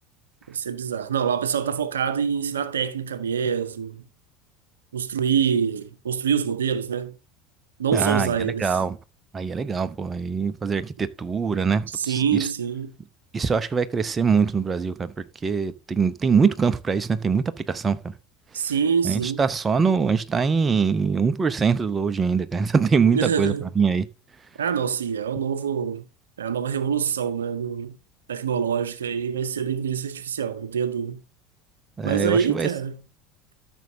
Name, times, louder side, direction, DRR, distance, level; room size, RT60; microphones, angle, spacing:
voice 1, 0.5-4.0 4.9-7.1 7.8-8.8 11.9-12.9 18.5-19.4 23.1-23.7 24.6-26.0 26.4-28.0 28.3-31.2 32.0-33.0, right 7 dB, 80° right, 0.7 m, -25 dB
voice 2, 7.9-9.0 9.3-12.5 13.3-15.1 15.4-18.1 19.0-24.1 32.0-32.7, right 5 dB, 25° right, 0.7 m, -23 dB
13.5 x 6.3 x 2.7 m
figure-of-eight pair, 75°, 0 cm